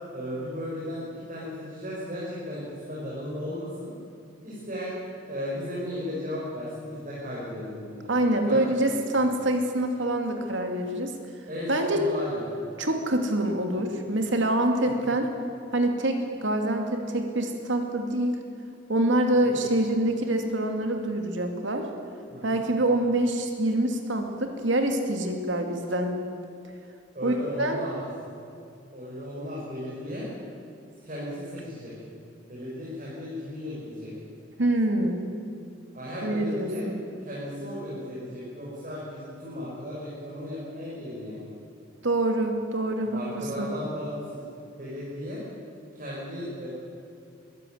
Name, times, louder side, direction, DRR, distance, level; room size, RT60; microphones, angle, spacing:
voice 1, 0.1-3.9 4.4-5.0 5.3-8.1 8.4-9.3 11.5-12.5 14.8-15.1 19.5-19.6 22.3-22.6 27.1-28.0 28.9-30.3 31.0-31.9 32.5-34.1 35.9-36.9 37.2-41.5 43.1-44.4 44.7-45.4 45.9-46.7, left 1 dB, 40° right, -7 dB, 5.9 m, -35 dB
voice 2, 8.1-11.1 11.7-12.0 12.8-15.3 15.7-18.4 18.9-21.8 22.4-26.2 27.2-27.8 34.6-35.3 36.2-37.0 42.0-43.7, right 1 dB, 70° right, 4 dB, 2.5 m, -25 dB
22.0 x 15.0 x 9.4 m, 2.6 s
head